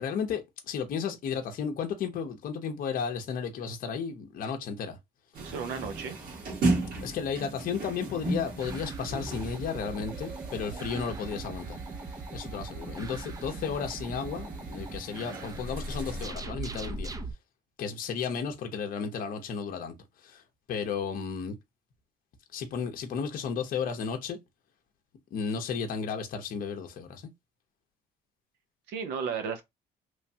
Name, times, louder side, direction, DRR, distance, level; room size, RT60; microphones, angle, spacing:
voice 1, 0.0-5.0 7.0-11.8 12.3-17.1 17.8-19.9 20.2-20.4 20.7-21.6 22.5-24.4 25.3-27.2, left 6 dB, 55° left, 0.7 m, -33 dB
sound 1, 5.3-16.3, right 2 dB, 55° right, 1.3 m, -36 dB
voice 2, 5.3-6.2 28.9-29.6, right 6 dB, 85° right, 0.7 m, -34 dB
sound 2, 8.6-17.3, right 3 dB, 20° right, 0.4 m, -40 dB
3.1 x 2.2 x 2.7 m
cardioid pair, 110°, 17 cm